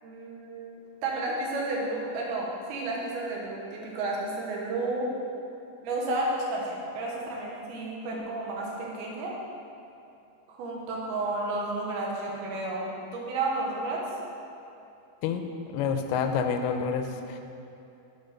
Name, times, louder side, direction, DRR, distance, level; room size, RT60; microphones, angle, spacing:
voice 1, 0.0-0.7 1.0-5.1 5.8-9.4 10.5-12.9 13.1-14.2, right 2 dB, 80° right, -2 dB, 3.2 m, -32 dB
voice 2, 15.7-17.4, left 6 dB, 90° left, 6 dB, 2.6 m, -28 dB
8.8 x 5.1 x 6.6 m, 2.8 s
omnidirectional pair, 4.4 m